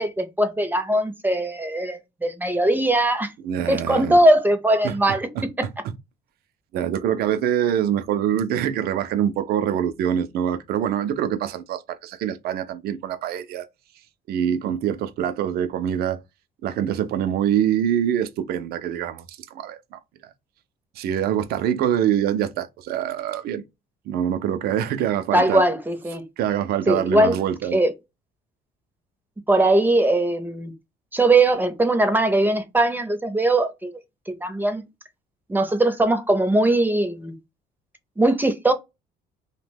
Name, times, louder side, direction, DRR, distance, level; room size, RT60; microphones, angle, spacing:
voice 1, 0.0-3.3 3.7-5.3 25.3-26.2 26.9-27.4 27.7-27.9 29.5-30.7 31.1-33.9 34.3-34.8 35.5-37.3 38.2-38.7, right 1 dB, 10° right, 0.6 m, -20 dB
voice 2, 3.4-4.2 4.8-5.0 5.3-5.4 6.7-13.7 14.3-16.2 16.6-20.3 21.0-23.6 24.1-25.6 26.4-27.8, right 9 dB, 65° right, 0.4 m, -24 dB
2.8 x 2.1 x 3.3 m
cardioid pair, 110°, 17 cm